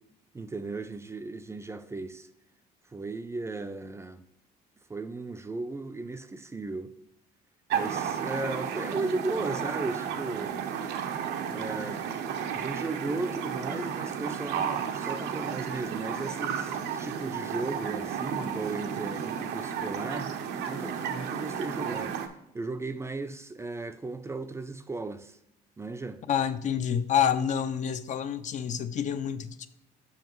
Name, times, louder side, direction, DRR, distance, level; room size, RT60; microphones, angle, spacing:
voice 1, 0.3-2.3 2.9-4.2 4.9-6.9 7.7-10.5 11.5-12.0 12.5-20.3 20.7-22.1 22.5-25.4 25.8-26.2, right 3 dB, 15° right, 0.4 m, -36 dB
sound 1, 7.7-22.3, right 7 dB, 80° right, 0.7 m, -33 dB
voice 2, 26.3-29.7, left 8 dB, 45° left, 0.5 m, -28 dB
7.1 x 5.7 x 3.0 m
cardioid pair, 110°, 17 cm